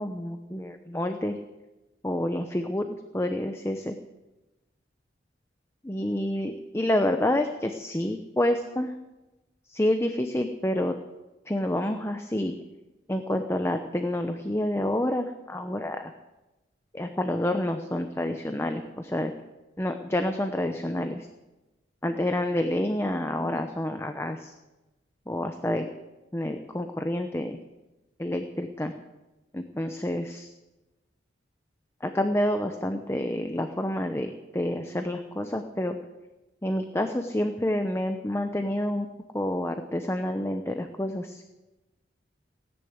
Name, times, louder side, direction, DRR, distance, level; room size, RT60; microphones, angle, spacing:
voice 1, 0.0-1.4 2.0-4.0 5.8-8.9 9.7-10.9 11.5-12.5 13.1-16.1 16.9-19.3 19.8-21.3 22.0-24.5 25.3-25.9 26.3-27.6 28.2-28.9 29.5-30.5 32.0-36.0 36.6-39.1 39.3-41.4, left 1 dB, 15° left, 6 dB, 0.8 m, -28 dB
17.0 x 10.5 x 8.0 m, 1.1 s
head